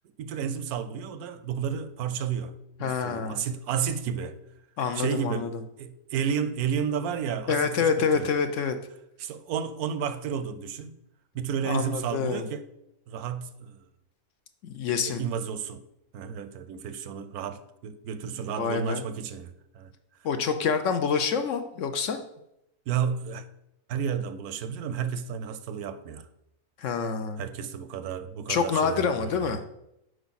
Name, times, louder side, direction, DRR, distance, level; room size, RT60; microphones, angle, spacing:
voice 1, 0.2-2.5 2.8-4.4 4.9-5.5 5.8-8.3 9.2-10.9 11.3-12.6 13.1-13.9 15.0-15.8 16.1-19.9 22.9-23.4 23.9-26.3 27.4-29.6, right 7 dB, 80° right, 1.1 m, -32 dB
voice 2, 2.8-3.4 4.8-5.5 7.5-8.7 11.6-12.5 14.6-15.2 18.6-19.0 20.2-22.2 26.8-27.4 28.5-29.6, left 6 dB, 65° left, 0.9 m, -27 dB
7.9 x 5.2 x 4.1 m
omnidirectional pair, 1.6 m